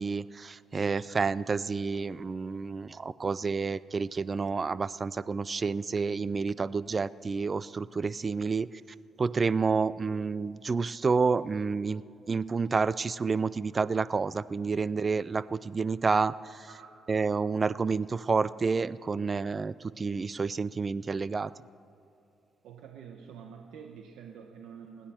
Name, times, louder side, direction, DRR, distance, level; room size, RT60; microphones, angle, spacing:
voice 1, 0.0-8.7 9.2-12.0 12.3-16.7 17.1-21.5, right 4 dB, 35° right, 18 dB, 0.4 m, -29 dB
voice 2, 22.6-25.1, right 7 dB, 85° right, 3 dB, 1.1 m, -47 dB
29.0 x 10.0 x 4.4 m, 2.8 s
cardioid pair, 90°, 0 cm